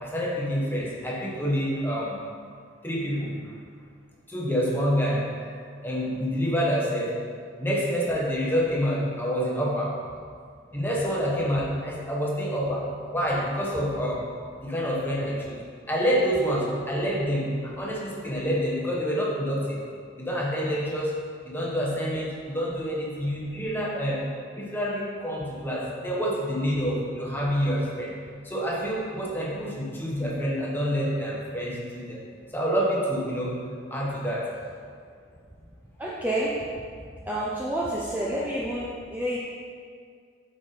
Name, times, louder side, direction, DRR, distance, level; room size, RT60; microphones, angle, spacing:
voice 1, 0.0-2.2 2.8-3.5 4.3-5.5 5.8-7.1 7.6-10.0 10.7-14.3 14.6-15.6 15.9-19.8 20.2-21.2 21.4-24.3 24.5-28.1 28.4-32.2 32.5-33.6 33.9-34.5, equal, 10° left, -4 dB, 1.2 m, -27 dB
voice 2, 36.0-36.6 37.2-39.4, right 1 dB, 10° right, -6 dB, 0.6 m, -29 dB
8.3 x 5.1 x 4.2 m, 2.1 s
head